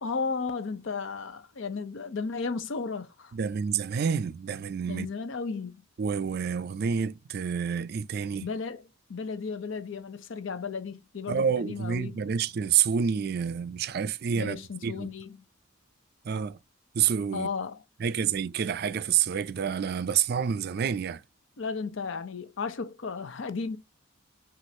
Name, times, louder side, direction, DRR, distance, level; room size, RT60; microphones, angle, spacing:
voice 1, 0.0-3.3 4.9-5.8 8.4-12.2 14.3-15.4 17.3-17.8 21.6-23.8, left 4 dB, 70° left, 0.6 m, -34 dB
voice 2, 3.3-5.1 6.0-8.5 11.3-15.1 16.2-16.6 16.9-17.5 18.0-21.2, right 7 dB, 50° right, 0.4 m, -28 dB
6.1 x 2.5 x 2.7 m
head